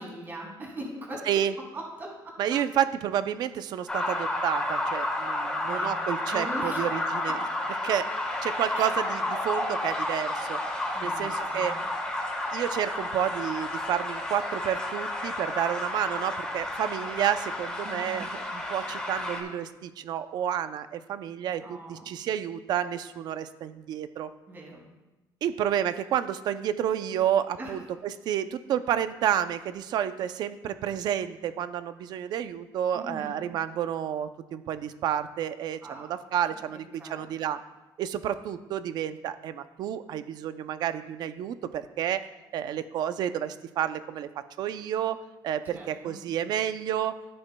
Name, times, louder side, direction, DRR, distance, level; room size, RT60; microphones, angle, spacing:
voice 1, 0.0-1.4 1.7-2.3 5.6-5.9 6.3-6.8 8.7-8.9 10.9-11.8 17.8-18.3 21.6-22.0 24.5-24.8 27.6-27.8 32.9-33.4 35.8-36.1 37.0-37.3 45.6-46.2, right 1 dB, 25° right, -1 dB, 2.5 m, -40 dB
voice 2, 2.4-7.4 7.8-8.1 8.4-10.6 11.0-11.8 12.5-24.3 25.4-37.6 38.0-42.3 42.5-44.3 44.6-45.2 45.4-47.2, right 10 dB, 60° right, 11 dB, 0.5 m, -30 dB
sound 1, 3.9-19.4, left 1 dB, 10° left, 1.3 m, -31 dB
14.5 x 7.7 x 2.2 m, 1.1 s
cardioid pair, 165°, 8 cm